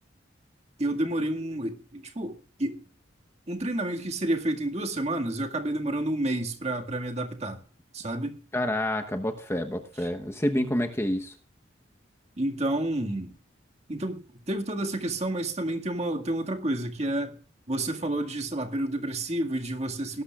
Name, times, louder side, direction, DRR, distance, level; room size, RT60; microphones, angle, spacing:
voice 1, 0.8-2.8 3.5-7.6 7.9-8.4 12.4-13.3 13.9-17.3 17.7-20.2, right 1 dB, 35° right, 1.9 m, -30 dB
voice 2, 8.5-11.4, left 1 dB, 15° left, 0.9 m, -28 dB
19.0 x 12.0 x 2.4 m
head